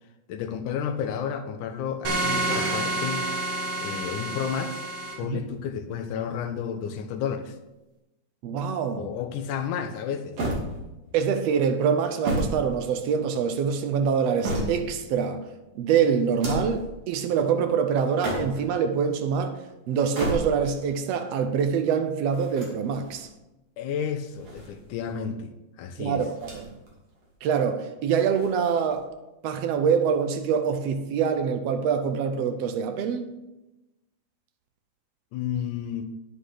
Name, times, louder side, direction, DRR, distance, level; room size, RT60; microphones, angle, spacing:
voice 1, 0.3-3.3 3.8-4.9 5.2-7.5 9.0-10.4 23.8-25.5 25.8-26.3 35.3-36.1, left 7 dB, 75° left, 7 dB, 2.2 m, -31 dB
sound 1, 2.1-5.1, right 2 dB, 70° right, 3.5 m, -28 dB
voice 2, 8.4-9.1 11.1-15.5 15.8-19.6 19.9-23.3 26.0-26.7 27.4-29.1 29.4-33.3, right 7 dB, 90° right, 7 dB, 1.4 m, -25 dB
sound 2, 10.4-11.2 12.0-13.4 14.0-15.1 16.2-16.9 18.0-18.8 19.9-20.8 22.3-23.3 24.2-25.1 26.3-26.9 27.2-27.3 28.3-29.1, right 1 dB, 50° right, 3.2 m, -32 dB
10.0 x 9.8 x 4.0 m, 0.99 s
omnidirectional pair, 3.8 m